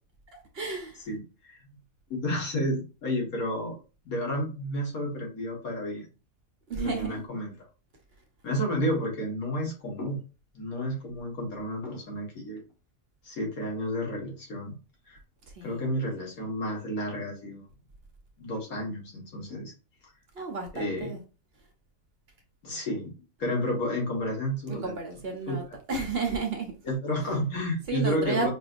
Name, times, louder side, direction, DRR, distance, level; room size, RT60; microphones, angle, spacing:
voice 1, 0.3-1.1 6.7-7.3 15.5-15.8 20.3-21.2 24.7-25.6 25.9-26.7 27.2-27.3 27.9-28.5, right 4 dB, 50° right, 1.0 m, -32 dB
voice 2, 1.1-1.6 2.1-3.8 4.1-6.1 6.8-7.5 8.4-10.2 10.5-12.6 13.2-14.8 15.1-15.2 15.6-17.7 18.4-19.7 20.7-21.2 22.6-23.1 23.4-24.9 25.5-25.6 26.8-28.5, equal, 85° left, 1.9 m, -31 dB
5.5 x 2.8 x 2.5 m
omnidirectional pair, 1.5 m